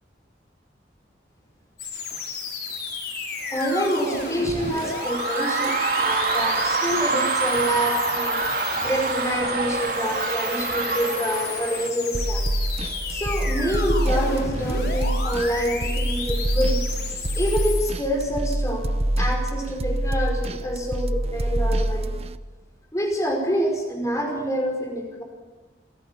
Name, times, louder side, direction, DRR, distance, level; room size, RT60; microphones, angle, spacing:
sound 1, 1.8-17.9, left 4 dB, 65° left, 5.2 m, -33 dB
voice 1, 3.5-8.4 8.8-12.5 13.1-16.8 17.3-18.9 19.2-22.2 22.9-25.2, equal, 15° left, 2 dB, 5.3 m, -27 dB
sound 2, 3.6-11.9, right 4 dB, 50° right, 2.8 m, -26 dB
sound 3, 12.1-22.4, right 1 dB, 35° right, 0.8 m, -26 dB
27.5 x 17.5 x 7.2 m, 1.3 s
head